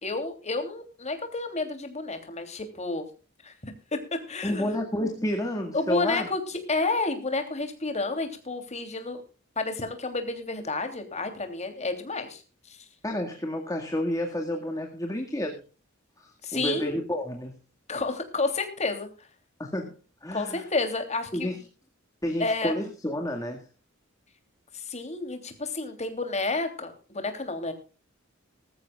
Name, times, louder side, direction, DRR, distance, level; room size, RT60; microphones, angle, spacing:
voice 1, 0.0-3.1 3.4-3.5 3.9-4.0 4.3-4.7 5.7-9.2 9.6-12.4 12.7-12.8 16.4-17.0 17.9-19.3 20.3-21.5 22.4-22.8 24.7-27.7, left 3 dB, 35° left, 6 dB, 3.1 m, -30 dB
voice 2, 4.4-6.3 13.0-15.6 16.2-17.6 19.6-20.0 20.2-20.7 21.3-21.6 22.2-23.7, left 1 dB, 15° left, 2 dB, 2.0 m, -30 dB
20.5 x 13.5 x 2.4 m, 0.35 s
head